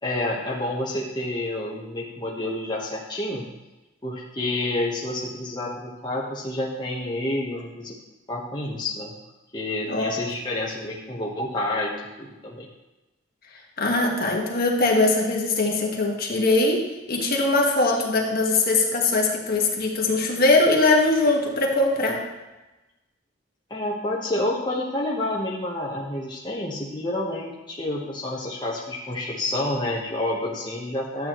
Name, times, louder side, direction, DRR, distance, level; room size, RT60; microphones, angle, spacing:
voice 1, 0.0-3.5 4.0-7.9 8.3-9.2 9.5-12.7 23.7-31.3, left 1 dB, 25° left, -4 dB, 1.2 m, -29 dB
voice 2, 13.8-16.8 17.1-22.2, left 2 dB, 50° left, -1 dB, 1.6 m, -21 dB
11.5 x 8.3 x 3.1 m, 1.1 s
head